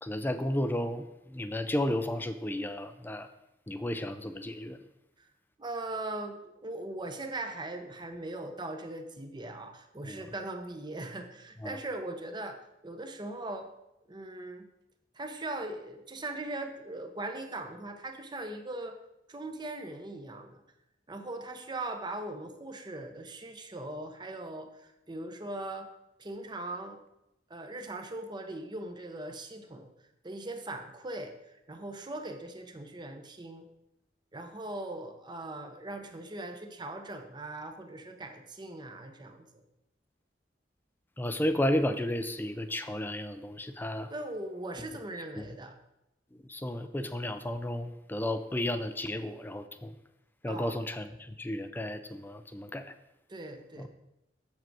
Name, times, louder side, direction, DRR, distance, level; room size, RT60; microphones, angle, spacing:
voice 1, 0.0-3.3 3.7-4.8 10.1-10.2 11.6-11.8 41.2-44.1 45.4-45.5 46.5-50.0 50.4-52.9 53.8-53.9, left 1 dB, 10° left, 9 dB, 0.5 m, -33 dB
voice 2, 5.6-13.7 14.1-14.7 15.1-18.9 19.3-20.6 21.1-25.9 26.2-27.0 27.5-29.9 30.2-31.3 31.7-33.7 34.3-39.4 44.1-45.7 50.5-50.8 53.3-53.9, right 2 dB, 25° right, 6 dB, 0.8 m, -40 dB
7.5 x 7.5 x 4.7 m, 0.87 s
head